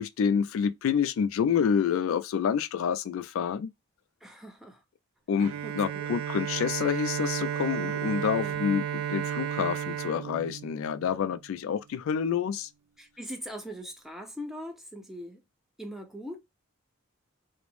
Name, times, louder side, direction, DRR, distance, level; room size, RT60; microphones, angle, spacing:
voice 1, 0.0-3.7 5.3-12.7, left 7 dB, 70° left, 0.3 m, -28 dB
voice 2, 4.2-4.8 5.6-6.1 8.4-8.6 13.0-15.4 15.8-16.4, equal, ahead, 0.5 m, -41 dB
Bowed string instrument, 5.4-11.4, right 9 dB, 75° right, 0.3 m, -33 dB
2.5 x 2.1 x 3.1 m
head